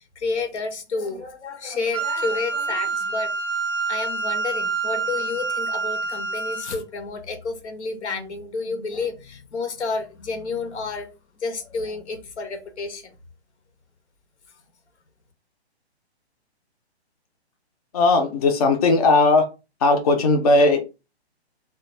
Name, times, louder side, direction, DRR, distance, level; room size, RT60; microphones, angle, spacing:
voice 1, 0.2-3.3 3.9-11.1 11.4-13.1, left 4 dB, 90° left, 0.7 m, -30 dB
Wind instrument woodwind instrument, 1.9-6.8, right 4 dB, 25° right, 0.4 m, -27 dB
voice 2, 17.9-19.4 19.8-20.8, left 3 dB, 35° left, 0.4 m, -17 dB
2.2 x 2.2 x 3.0 m
hypercardioid pair, 155°, 33 cm